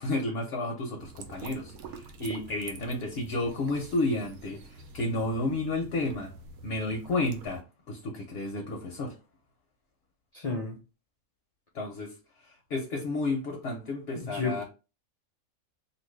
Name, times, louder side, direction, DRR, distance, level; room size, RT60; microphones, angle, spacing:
voice 1, 0.0-6.3 6.6-9.1 11.7-14.6, left 2 dB, 60° left, 0.8 m, -32 dB
sound 1, 1.0-7.6, right 4 dB, 80° right, 1.0 m, -47 dB
voice 2, 10.3-10.8 14.2-14.6, left 3 dB, 90° left, 0.3 m, -32 dB
2.8 x 2.5 x 3.1 m
omnidirectional pair, 1.5 m